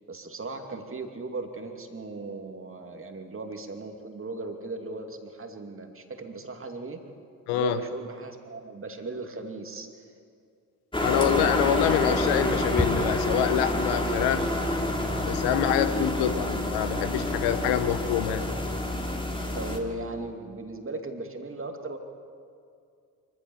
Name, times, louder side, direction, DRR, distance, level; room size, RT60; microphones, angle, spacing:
voice 1, 0.1-7.0 7.5-10.1 19.6-22.0, right 2 dB, 30° right, 4 dB, 2.6 m, -37 dB
voice 2, 7.5-7.8 11.0-14.5 15.2-18.5, left 10 dB, 70° left, 11 dB, 1.1 m, -26 dB
sound 1, 10.9-19.8, left 1 dB, 10° left, 3.0 m, -28 dB
24.5 x 15.0 x 7.0 m, 2.4 s
hypercardioid pair, 50°, 42 cm